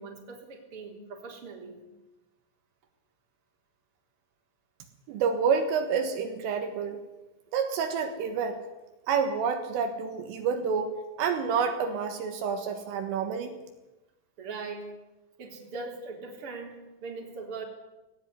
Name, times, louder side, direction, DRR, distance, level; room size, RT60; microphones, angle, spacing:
voice 1, 0.0-1.8 14.4-14.9 15.4-17.6, right 4 dB, 30° right, 1 dB, 4.1 m, -40 dB
voice 2, 5.1-7.0 7.5-8.6 9.1-10.9 11.2-13.5, right 6 dB, 75° right, 6 dB, 4.0 m, -28 dB
19.0 x 18.0 x 9.7 m, 1.0 s
omnidirectional pair, 6.0 m